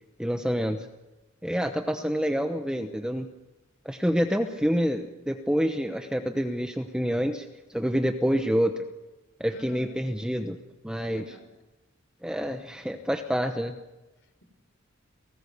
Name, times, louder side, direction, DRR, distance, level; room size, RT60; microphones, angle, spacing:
voice 1, 0.2-0.9 1.4-3.3 3.8-8.8 9.4-10.6 10.8-11.2 12.2-13.8, equal, 5° right, 5 dB, 0.9 m, -27 dB
voice 2, 1.7-2.1 9.5-10.0 10.9-11.4 14.2-14.4, left 1 dB, 65° left, 8 dB, 4.3 m, -49 dB
30.0 x 18.5 x 6.8 m, 1.1 s
head